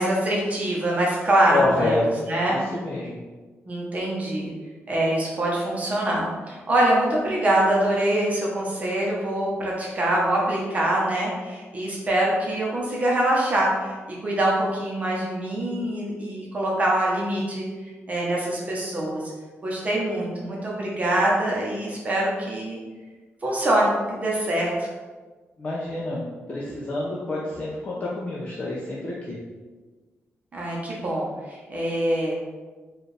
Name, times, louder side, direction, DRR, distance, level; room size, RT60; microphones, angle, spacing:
voice 1, 0.0-2.6 3.7-4.5 4.9-17.7 18.1-19.2 19.6-22.8 23.4-24.7 30.5-32.4, right 1 dB, 30° right, -4 dB, 0.8 m, -24 dB
voice 2, 1.5-3.2 25.6-29.4, left 2 dB, 30° left, -6 dB, 0.5 m, -28 dB
4.4 x 2.4 x 3.2 m, 1.3 s
wide cardioid pair, 155°, 5 cm